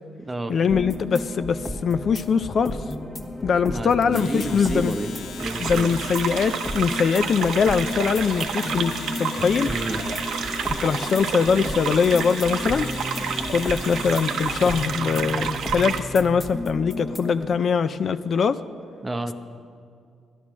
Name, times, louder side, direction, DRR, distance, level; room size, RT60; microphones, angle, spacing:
voice 1, 0.5-2.8 3.4-4.9 5.6-9.7 10.8-12.9 13.4-18.6, left 6 dB, 50° left, 12 dB, 0.4 m, -22 dB
sound 1, 0.7-17.5, left 1 dB, 25° left, 1.2 m, -33 dB
voice 2, 3.7-5.1 5.4-6.0 9.6-10.0 19.0-19.3, right 2 dB, 20° right, 8 dB, 0.8 m, -30 dB
Domestic sounds home sounds, 4.0-15.0, left 5 dB, 70° left, 0.8 m, -39 dB
sound 2, 5.4-16.0, right 7 dB, 75° right, 0.7 m, -30 dB
11.5 x 11.0 x 6.2 m, 2.2 s
cardioid pair, 90°, 0 cm